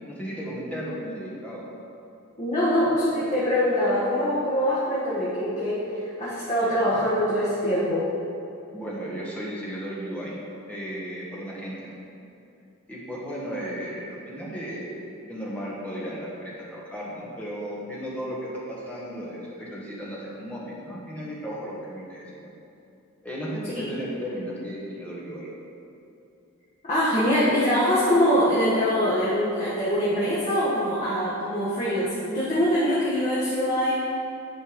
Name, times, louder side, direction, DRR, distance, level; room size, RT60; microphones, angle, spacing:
voice 1, 0.1-1.7 8.7-10.4 10.7-11.9 12.9-15.0 15.3-18.4 18.7-22.5 23.2-25.5, equal, 5° left, -6 dB, 1.5 m, -35 dB
voice 2, 2.4-8.1 23.7-23.8 26.9-34.2, equal, 30° left, -10 dB, 1.5 m, -23 dB
10.5 x 4.5 x 5.2 m, 2.6 s
head